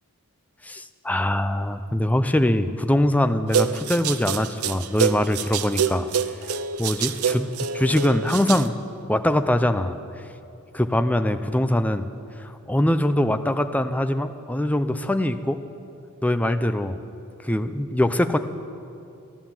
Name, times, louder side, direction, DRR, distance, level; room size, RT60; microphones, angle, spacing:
voice 1, 0.6-6.1 6.8-8.7 9.1-10.0 10.7-12.0 12.4-15.6 16.2-17.0 17.4-18.4, left 1 dB, 5° left, 9 dB, 0.5 m, -23 dB
sound 1, 3.5-8.7, right 7 dB, 80° right, 0.6 m, -26 dB
14.5 x 11.0 x 7.3 m, 2.6 s
head